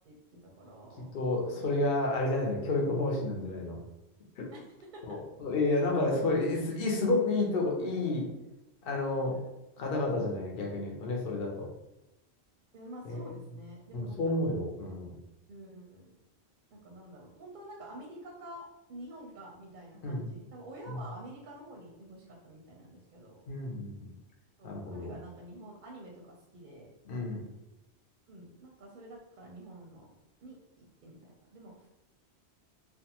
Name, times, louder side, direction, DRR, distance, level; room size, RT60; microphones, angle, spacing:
voice 1, 0.4-1.6 4.5-4.6 4.9-5.2 6.0-6.4 9.3-9.4 12.7-14.2 15.5-16.2 16.7-23.4 24.6-26.9 28.3-30.1 30.4-31.9, right 1 dB, 55° right, -1 dB, 0.6 m, -49 dB
voice 2, 1.1-3.8 4.4-4.5 5.0-8.3 8.8-9.4 9.8-11.7 13.0-13.4 13.9-15.1 20.0-20.3 20.9-21.0 23.5-24.1 24.6-25.1 27.1-27.5, left 2 dB, 60° left, -1 dB, 0.8 m, -30 dB
2.5 x 2.2 x 2.8 m, 0.95 s
omnidirectional pair, 1.1 m